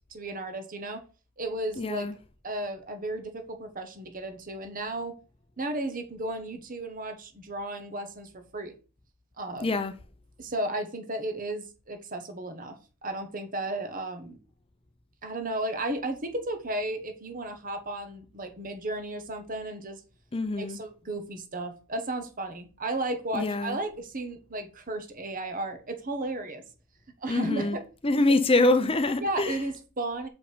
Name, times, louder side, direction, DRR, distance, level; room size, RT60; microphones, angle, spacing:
voice 1, 0.1-1.0 1.4-2.1 2.4-5.1 5.6-8.7 9.4-9.7 10.4-12.7 13.0-14.4 15.2-20.0 20.6-26.6 27.2-27.8 29.2-30.3, right 2 dB, 40° right, 1.3 m, -34 dB
voice 2, 1.8-2.1 9.6-9.9 20.3-20.8 23.3-23.8 27.3-27.8 28.0-29.6, left 2 dB, 25° left, 0.6 m, -25 dB
6.5 x 5.0 x 5.0 m
head